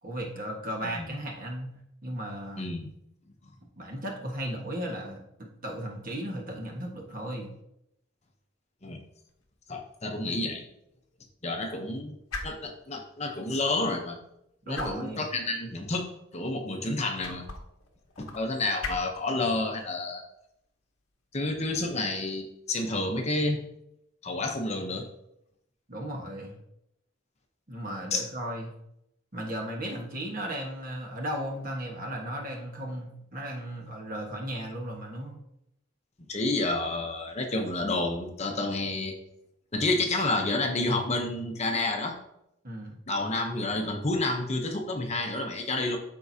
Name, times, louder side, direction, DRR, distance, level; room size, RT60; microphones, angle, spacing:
voice 1, 0.0-1.7 2.0-2.7 3.8-7.5 14.7-15.3 25.9-26.6 27.7-28.7 29.3-35.4 42.6-43.0, right 1 dB, 40° right, 0 dB, 1.4 m, -35 dB
voice 2, 0.8-1.2 2.6-2.9 8.8-9.0 9.7-10.6 11.4-14.2 14.7-17.4 18.2-20.2 21.3-23.6 24.2-25.1 28.1-28.3 36.3-39.1 39.7-42.1 43.1-46.0, left 2 dB, 30° left, 3 dB, 0.8 m, -30 dB
sound 1, 9.3-22.9, left 3 dB, 85° left, 1.1 m, -45 dB
13.0 x 4.6 x 2.8 m, 0.81 s
head